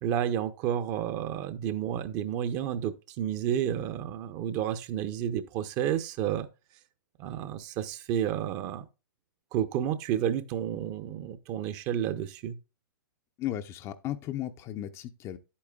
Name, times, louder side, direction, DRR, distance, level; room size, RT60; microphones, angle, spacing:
voice 1, 0.0-6.5 7.2-8.8 9.5-12.5, right 10 dB, 30° right, 0.8 m, -31 dB
voice 2, 13.4-15.4, left 12 dB, 25° left, 0.6 m, -35 dB
10.5 x 8.6 x 2.4 m
hypercardioid pair, 125°, 11 cm